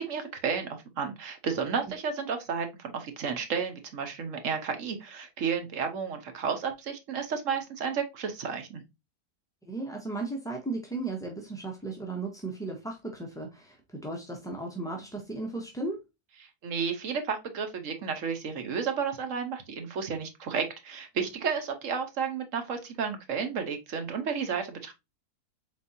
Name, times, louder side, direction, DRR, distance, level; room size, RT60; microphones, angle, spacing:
voice 1, 0.0-8.8 16.4-24.9, right 6 dB, 60° right, 1.2 m, -32 dB
voice 2, 9.7-16.0, right 2 dB, 5° left, 0.3 m, -35 dB
4.3 x 3.9 x 2.6 m
omnidirectional pair, 1.6 m